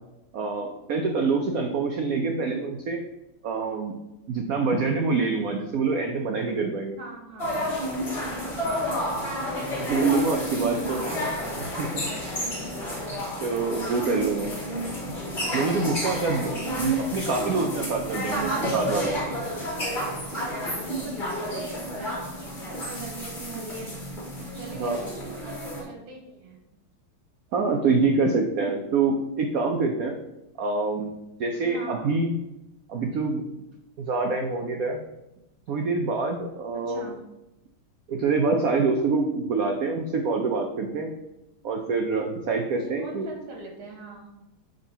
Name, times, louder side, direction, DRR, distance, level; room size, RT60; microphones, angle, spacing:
voice 1, 0.3-3.0 3.4-3.9 4.3-7.0 9.9-11.0 11.8-12.1 13.4-14.6 15.5-19.2 24.8-25.0 27.5-30.2 30.6-32.3 32.9-33.4 34.0-35.0 35.7-37.1 38.1-41.1 41.6-43.3, right 4 dB, 85° right, 3 dB, 0.7 m, -26 dB
voice 2, 7.0-7.7 8.6-9.2 9.9-11.5 20.3-23.9 24.5-25.3 25.8-26.6 31.6-32.1 36.7-37.2 42.8-44.3, right 3 dB, 70° right, 0 dB, 2.4 m, -40 dB
sound 1, 7.4-25.8, equal, 25° left, 1.5 m, -30 dB
6.5 x 3.6 x 5.5 m, 0.93 s
omnidirectional pair, 2.3 m